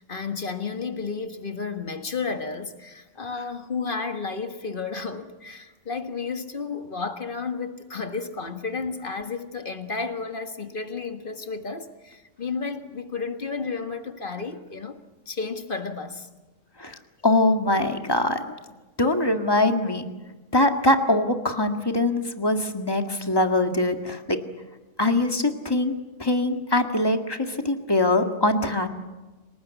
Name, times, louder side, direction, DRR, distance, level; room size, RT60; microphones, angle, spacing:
voice 1, 0.0-15.0 15.3-16.3, left 4 dB, 40° left, 1.7 m, -32 dB
voice 2, 17.2-18.4 19.0-20.0 20.5-24.4 25.0-25.9 26.2-28.9, left 2 dB, 20° left, 1.9 m, -22 dB
29.5 x 19.5 x 8.3 m
omnidirectional pair, 1.3 m